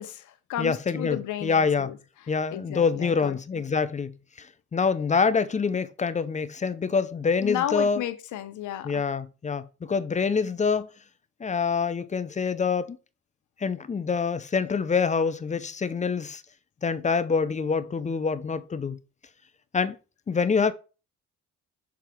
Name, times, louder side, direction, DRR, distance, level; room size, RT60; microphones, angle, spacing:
voice 1, 0.0-2.0 2.2-3.6 7.4-9.0, left 11 dB, 75° left, 0.8 m, -33 dB
voice 2, 0.6-1.9 2.3-4.5 4.7-8.0 8.8-10.9 11.4-13.0 13.6-16.4 16.8-19.0 19.7-20.0 20.3-20.7, left 5 dB, 25° left, 0.5 m, -26 dB
6.2 x 3.6 x 4.5 m
cardioid pair, 90°, 30 cm